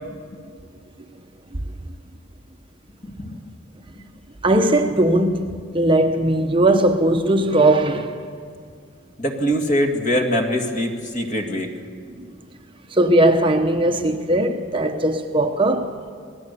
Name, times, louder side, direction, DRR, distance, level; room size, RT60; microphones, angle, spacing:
voice 1, 3.0-3.4 9.2-11.7, equal, 35° left, 2.2 m, -23 dB
voice 2, 4.4-8.3 12.2-12.3 12.9-15.9, right 1 dB, 25° right, 0.9 m, -19 dB
27.0 x 19.0 x 6.9 m
head